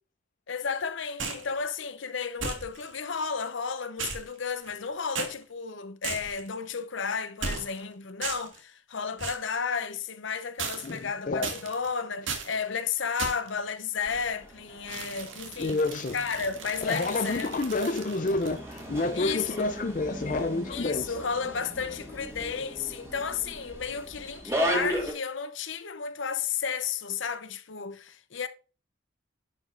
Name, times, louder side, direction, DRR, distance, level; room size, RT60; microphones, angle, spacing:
voice 1, 0.5-15.8 16.1-17.5 19.1-19.8 20.7-28.5, left 6 dB, 70° left, 0.8 m, -33 dB
sound 1, 1.2-1.5 2.4-3.0 4.0-4.8 5.1-5.3 6.0-6.5 7.4-7.8 8.2-8.6 9.2-9.5 10.6-11.1 11.4-11.9 12.3-12.6 13.2-13.6 14.9-18.9, right 5 dB, 75° right, 1.7 m, -36 dB
voice 2, 10.8-11.5 15.6-16.2 16.8-21.2, left 2 dB, 40° left, 0.5 m, -29 dB
sound 2, 14.0-25.1, equal, 15° right, 1.8 m, -37 dB
11.0 x 5.2 x 2.5 m
head